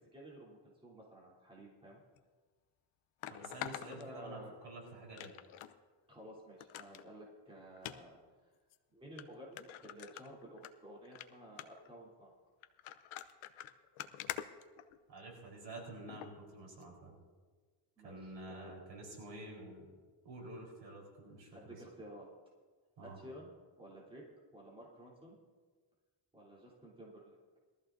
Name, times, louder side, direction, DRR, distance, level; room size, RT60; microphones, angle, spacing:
voice 1, 0.1-2.0 3.8-4.6 6.1-8.5 8.9-12.3 18.0-18.7 21.5-22.3 23.0-23.5 23.8-24.2 24.5-25.4 26.3-27.4, equal, 10° right, -5 dB, 3.5 m, -53 dB
sound 1, 2.2-2.3 3.2-4.7 5.2-5.7 6.1-6.2 6.6-7.0 7.8-8.0 8.7-8.8 9.2-9.3 9.6-10.7 11.0-11.3 11.6-11.9 12.6-15.3 16.1-16.3 16.8-16.9, left 12 dB, 80° left, 0.8 m, -45 dB
voice 2, 3.3-5.3 15.1-17.2 18.0-19.9 20.2-21.8 23.0-23.2, right 2 dB, 60° right, -2 dB, 4.4 m, -49 dB
21.5 x 14.0 x 2.7 m, 1.5 s
cardioid pair, 135°, 49 cm